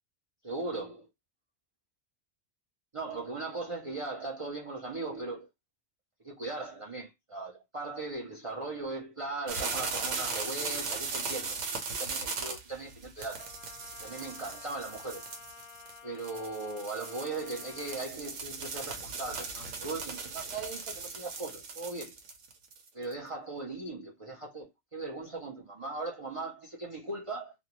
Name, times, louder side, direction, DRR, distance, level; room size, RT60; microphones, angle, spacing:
voice 1, 0.4-1.1 2.9-5.5 6.2-11.6 12.0-13.5 14.0-15.2 16.0-22.1 22.9-27.5, right 3 dB, 45° right, 0.4 m, -38 dB
sound 1, 9.5-23.1, right 4 dB, 90° right, 1.0 m, -38 dB
Trumpet, 13.4-18.0, left 8 dB, 45° left, 0.7 m, -51 dB
2.5 x 2.2 x 2.8 m
omnidirectional pair, 1.2 m